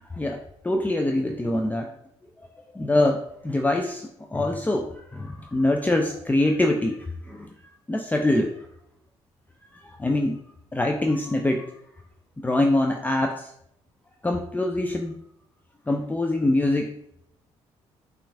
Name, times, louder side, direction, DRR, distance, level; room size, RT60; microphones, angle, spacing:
voice 1, 0.0-1.9 2.7-7.5 7.9-8.7 9.7-10.4 10.7-11.7 12.4-13.5 14.2-15.2 15.9-16.9, left 1 dB, 10° left, 3 dB, 0.5 m, -24 dB
5.9 x 2.5 x 3.4 m, 0.73 s
hypercardioid pair, 50°, 13 cm